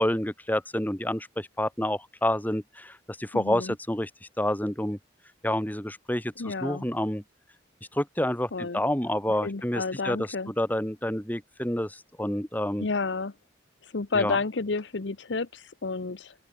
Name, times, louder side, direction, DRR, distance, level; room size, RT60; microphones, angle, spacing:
voice 1, 0.0-4.1 4.4-5.0 5.4-7.2 7.9-12.9 14.1-14.4, left 1 dB, 10° left, 2.2 m, -28 dB
voice 2, 3.3-3.7 6.4-6.9 8.5-8.8 9.4-10.5 12.8-13.3 13.8-16.3, left 4 dB, 80° left, 0.9 m, -30 dB
open air
head